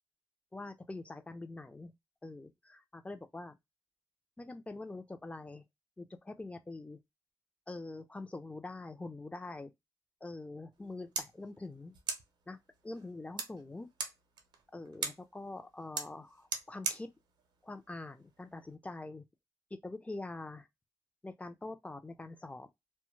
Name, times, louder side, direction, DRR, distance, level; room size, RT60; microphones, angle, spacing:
voice 1, 0.5-1.9 2.2-3.6 4.4-5.6 6.0-7.0 7.7-9.7 10.2-12.0 12.5-12.6 12.8-13.9 14.7-17.1 17.6-19.2 19.8-20.7 21.2-22.7, left 2 dB, 15° left, 0.5 m, -44 dB
sound 1, 10.7-18.7, right 5 dB, 90° right, 0.6 m, -43 dB
2.2 x 2.1 x 3.0 m
cardioid pair, 60°, 7 cm